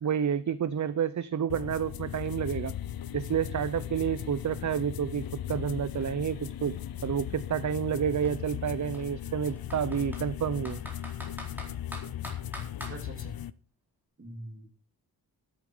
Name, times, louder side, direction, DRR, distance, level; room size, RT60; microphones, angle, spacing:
voice 1, 0.0-2.7 3.1-5.2 5.5-6.7 7.0-10.8, right 8 dB, 50° right, 15 dB, 0.6 m, -29 dB
sound 1, 1.5-13.5, left 11 dB, 65° left, 0.6 m, -37 dB
Computer keyboard, 4.7-4.8 5.1-7.0 7.8-7.9 8.2-8.3 8.9-10.3 10.6-13.0, equal, 5° right, 4.2 m, -44 dB
voice 2, 12.9-13.4 14.2-14.7, right 1 dB, 35° right, 2 dB, 3.2 m, -44 dB
12.5 x 11.0 x 4.9 m, 0.42 s
wide cardioid pair, 145°, 38 cm